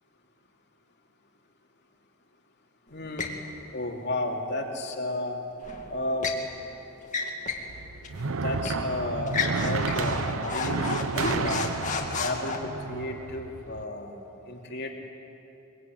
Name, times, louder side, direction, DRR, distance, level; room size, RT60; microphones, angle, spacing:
voice 1, 2.9-3.4 3.7-5.4 5.9-6.3 8.3-11.7 12.2-14.1 14.4-14.9, left 1 dB, 50° left, 0 dB, 2.8 m, -32 dB
sound 1, 3.2-3.4 5.6-6.4 7.0-7.7 8.0-8.2 8.6-8.9 9.3-12.6, left 4 dB, 35° left, 2.2 m, -32 dB
sound 2, 7.7-13.8, right 4 dB, 65° right, 0.7 m, -31 dB
23.0 x 23.0 x 9.2 m, 3.0 s
head